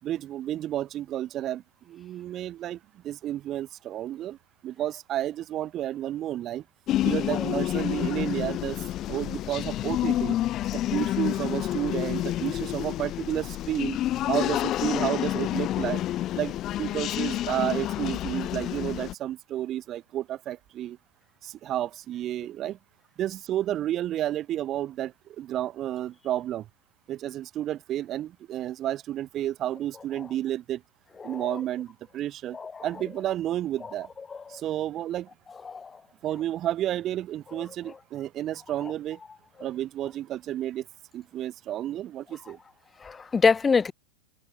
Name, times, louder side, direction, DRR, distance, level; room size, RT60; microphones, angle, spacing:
voice 1, 0.0-2.8 3.0-4.4 4.6-6.6 7.0-8.8 9.1-10.4 10.7-14.0 14.3-16.0 16.4-21.0 21.4-22.8 23.2-26.6 27.1-30.8 31.2-34.1 34.5-35.3 36.2-39.2 39.6-40.8 41.1-42.6, right 12 dB, 30° right, 4.7 m, -31 dB
sound 1, 6.9-19.1, left 13 dB, 35° left, 4.1 m, -29 dB
voice 2, 31.2-31.6 32.5-32.9 33.8-33.9 34.3-34.6 35.6-36.0 37.9-38.0 38.8-38.9 39.6-39.7 43.0-43.9, left 5 dB, 15° left, 2.0 m, -27 dB
figure-of-eight pair, 90°, 0 cm